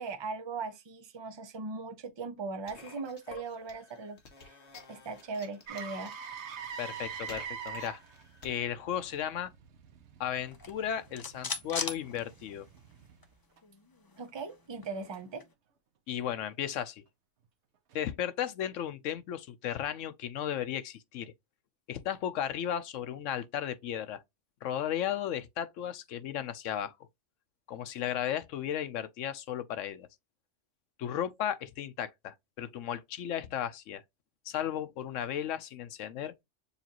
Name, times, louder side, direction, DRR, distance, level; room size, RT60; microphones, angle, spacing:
voice 1, 0.0-4.6 4.9-6.1 14.2-15.4, right 4 dB, 30° right, 0.6 m, -39 dB
sound 1, 2.6-8.6, left 4 dB, 65° left, 1.4 m, -53 dB
Motor vehicle (road), 5.7-13.6 17.9-18.1, right 7 dB, 70° right, 1.1 m, -45 dB
voice 2, 6.8-8.0 8.4-9.5 10.2-12.7 16.1-17.0 17.9-21.3 21.9-24.2 24.6-27.0 27.7-30.1 31.0-34.0 34.5-36.3, left 10 dB, 85° left, 1.0 m, -35 dB
sound 2, 10.5-12.9 13.2-13.3 13.6-15.5, left 4 dB, 35° left, 0.3 m, -40 dB
6.9 x 2.5 x 2.9 m
omnidirectional pair, 1.3 m